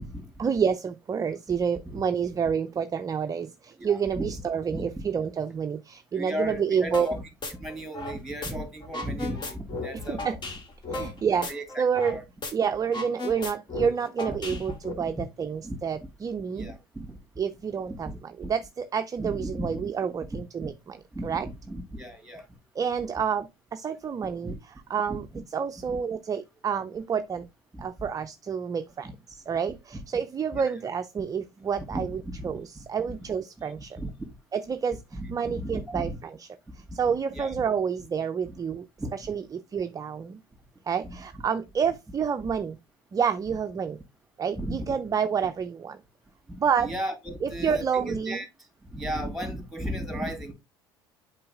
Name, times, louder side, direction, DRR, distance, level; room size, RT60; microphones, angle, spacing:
voice 1, 0.4-7.1 10.1-10.4 10.9-11.5 11.8-12.2 12.5-16.7 17.4-21.5 22.8-27.5 27.8-34.0 34.5-36.5 36.9-38.9 39.1-40.4 40.9-42.8 43.1-44.0 44.4-46.0 46.6-46.9 47.4-48.4, right 7 dB, 30° right, 0.5 m, -29 dB
voice 2, 3.8-4.4 4.7-5.0 6.1-7.2 7.5-10.3 10.9-11.1 11.4-11.8 12.1-12.2 13.8-13.9 14.3-15.2 15.6-15.8 16.6-17.1 17.9-18.5 19.2-19.9 20.3-20.7 21.1-22.4 24.4-24.6 25.1-25.4 25.8-26.0 27.7-28.1 29.0-29.1 30.5-30.6 31.8-33.1 33.6-34.3 35.1-36.2 36.9-37.0 37.3-37.5 38.5-38.6 39.0-39.1 41.0-41.2 42.4-42.5 44.6-44.8 46.5-48.5 48.9-50.5, equal, ahead, 2.7 m, -36 dB
sound 1, 6.9-7.1 7.4-8.5 8.8-12.2 12.4-12.5 12.8-14.9, left 2 dB, 35° left, 1.8 m, -35 dB
7.6 x 4.6 x 3.6 m
hypercardioid pair, 70°, 13 cm